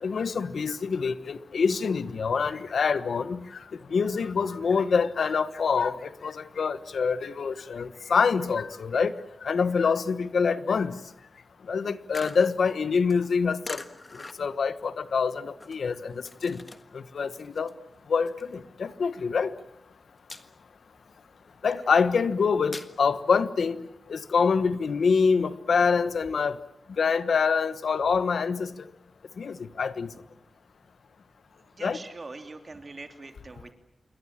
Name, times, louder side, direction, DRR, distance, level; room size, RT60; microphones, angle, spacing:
voice 1, 0.0-3.4 3.9-9.1 9.4-10.9 11.7-13.8 14.4-16.6 16.9-17.7 18.1-19.5 21.6-23.8 24.1-26.6 27.0-28.7 29.4-30.1 31.8-32.0, left 5 dB, 80° left, 1.2 m, -25 dB
sound 1, 12.1-17.0 17.3-19.2 19.6-19.9 20.2-20.8 21.2-22.9, left 2 dB, 30° left, 1.6 m, -43 dB
voice 2, 31.6-33.7, right 3 dB, 40° right, 2.9 m, -43 dB
28.0 x 23.0 x 7.5 m
wide cardioid pair, 145°, 0 cm